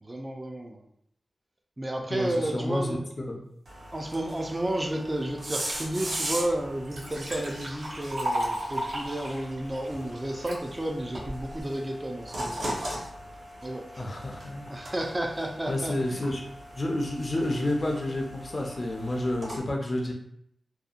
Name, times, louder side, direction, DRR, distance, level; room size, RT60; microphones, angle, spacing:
voice 1, 0.0-0.8 1.8-3.0 3.9-13.0 13.6-13.8 14.7-16.3, right 1 dB, 25° right, 2 dB, 0.3 m, -32 dB
voice 2, 2.1-3.0 3.3-3.4 14.0-14.8 15.7-16.4 16.8-20.1, left 1 dB, 45° left, 1 dB, 0.5 m, -30 dB
sound 1, 3.7-19.6, right 1 dB, 55° right, 0.9 m, -39 dB
Liquid, 6.1-6.2 6.6-10.6 11.2-11.6, equal, 85° right, 0.8 m, -34 dB
2.7 x 2.1 x 2.4 m, 0.73 s
wide cardioid pair, 70°, 0 cm